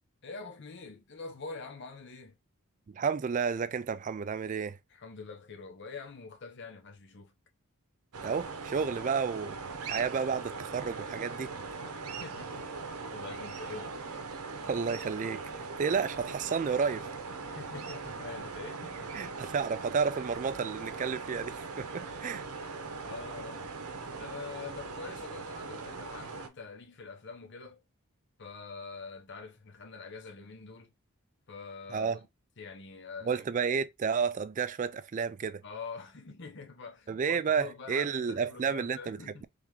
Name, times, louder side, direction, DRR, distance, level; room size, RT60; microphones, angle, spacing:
voice 1, 0.2-2.4 4.9-7.3 11.8-14.0 17.4-19.1 22.1-22.2 23.0-23.7 24.2-27.8 28.4-30.9 31.5-32.2 32.6-33.4 35.6-39.5, left 4 dB, 50° left, 0.8 m, -45 dB
voice 2, 2.9-4.8 8.2-9.6 9.8-11.5 14.6-17.1 19.1-22.4 31.9-32.2 33.2-35.6 37.1-39.5, right 6 dB, 35° right, 0.3 m, -31 dB
sound 1, 8.1-26.5, right 4 dB, 85° right, 0.8 m, -40 dB
3.7 x 3.4 x 2.9 m
head